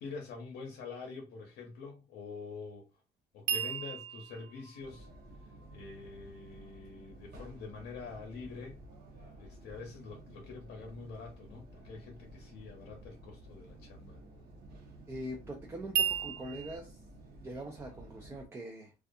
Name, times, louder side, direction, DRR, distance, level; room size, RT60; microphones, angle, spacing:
voice 1, 0.0-2.9 3.3-5.1 5.7-8.8 9.4-14.2, left 4 dB, 75° left, 0.7 m, -46 dB
sound 1, 3.5-6.6 15.9-16.8, right 9 dB, 90° right, 0.5 m, -35 dB
sound 2, 4.8-18.5, right 1 dB, 60° right, 0.9 m, -52 dB
voice 2, 15.1-17.0 17.4-18.9, right 1 dB, 15° right, 0.3 m, -42 dB
2.3 x 2.3 x 2.6 m
cardioid pair, 175°, 18 cm